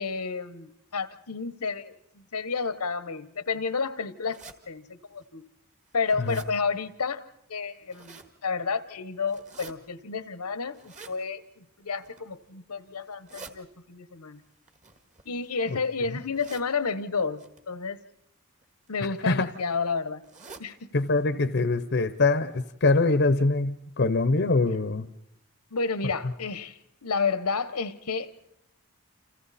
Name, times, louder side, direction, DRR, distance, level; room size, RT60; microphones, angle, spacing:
voice 1, 0.0-4.4 4.7-5.4 5.9-7.2 7.5-14.4 15.3-18.0 18.9-20.2 20.6-20.9 25.7-26.7 27.0-28.5, left 4 dB, 85° left, 15 dB, 1.1 m, -31 dB
sound 1, 4.3-4.6 5.2-5.3 5.7-6.5 7.6-8.3 9.3-9.7 10.7-11.2 11.9-12.3 13.0-13.5 14.7-15.7 16.3-16.7 17.4-17.6 18.6-18.9 19.2-19.3 19.6-19.7 20.2-20.7 21.1-21.2 21.5-21.6 22.1-22.2 22.5-22.6, right 4 dB, 35° right, 1.7 m, -47 dB
voice 2, 20.9-25.1, left 3 dB, 50° left, 12 dB, 0.8 m, -23 dB
29.5 x 27.5 x 4.2 m, 0.82 s
head